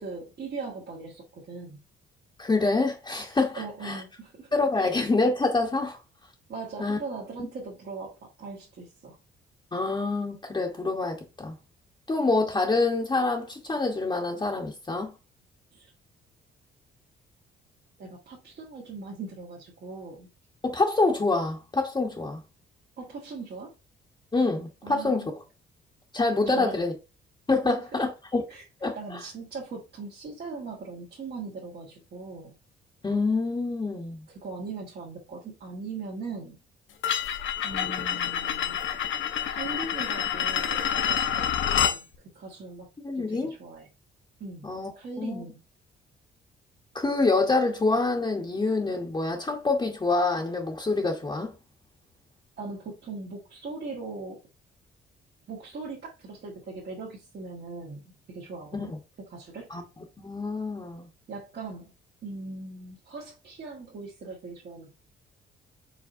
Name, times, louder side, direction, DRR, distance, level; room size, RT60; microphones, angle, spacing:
voice 1, 0.0-1.8 3.5-4.9 6.5-9.2 15.7-15.9 18.0-20.3 23.0-23.7 24.8-25.3 26.4-26.7 28.5-28.6 28.9-32.6 34.4-36.6 37.6-38.8 39.4-42.0 42.3-42.9 43.1-43.9 44.4-44.7 44.9-45.6 52.6-54.4 55.5-58.9 59.3-59.7 61.3-61.9 62.2-64.9, right 4 dB, 55° right, 1.6 m, -40 dB
voice 2, 2.4-4.0 4.5-6.0 6.8-7.0 9.7-11.6 12.1-15.1 20.6-22.4 24.3-25.3 26.1-26.9 27.5-28.4 28.8-29.2 33.0-34.3 43.0-43.5 44.6-44.9 45.2-45.4 46.9-51.5 58.7-59.0 59.7-59.8 60.2-61.1, left 3 dB, 20° left, 1.1 m, -26 dB
sound 1, 37.0-42.0, left 9 dB, 75° left, 0.9 m, -27 dB
4.9 x 4.0 x 2.7 m
cardioid pair, 90°, 20 cm